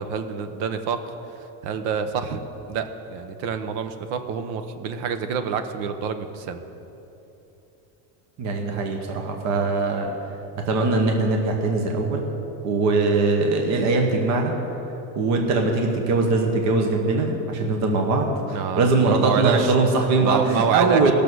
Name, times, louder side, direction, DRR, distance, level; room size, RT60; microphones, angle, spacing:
voice 1, 0.0-2.4 2.7-6.6 18.5-19.7 20.2-21.1, right 6 dB, 65° right, 8 dB, 1.0 m, -27 dB
voice 2, 8.4-10.1 10.6-12.2 12.6-14.5 15.1-21.1, right 3 dB, 40° right, 2 dB, 1.1 m, -21 dB
17.0 x 6.8 x 6.2 m, 3.0 s
cardioid pair, 180°, 43 cm